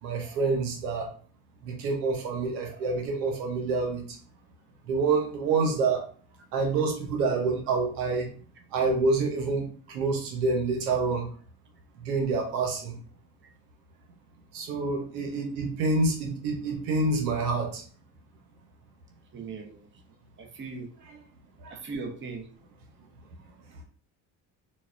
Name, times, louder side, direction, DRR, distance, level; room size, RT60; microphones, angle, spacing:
voice 1, 0.0-1.1 1.6-4.2 4.9-6.1 6.5-8.3 8.7-11.3 12.0-13.0 14.5-17.8 21.1-21.2 21.6-21.8, right 3 dB, 90° right, 1 dB, 0.9 m, -27 dB
voice 2, 19.3-19.9 20.4-20.9 21.7-22.5, right 4 dB, 25° right, 3 dB, 0.8 m, -38 dB
4.1 x 2.2 x 2.4 m, 0.43 s
hypercardioid pair, 70°, 46 cm